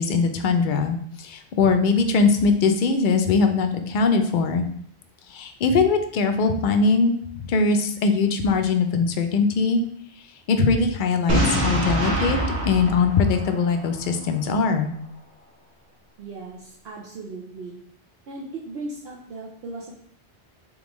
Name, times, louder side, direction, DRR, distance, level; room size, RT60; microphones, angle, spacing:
voice 1, 0.0-4.6 5.3-7.1 7.5-9.8 10.5-12.4 12.6-14.9, left 4 dB, 60° left, 6 dB, 0.6 m, -21 dB
Boom, 11.3-14.1, right 1 dB, 90° right, 1.4 m, -24 dB
voice 2, 16.2-17.8 18.3-20.0, right 3 dB, 70° right, -5 dB, 0.9 m, -37 dB
3.7 x 3.7 x 3.0 m, 0.64 s
omnidirectional pair, 1.1 m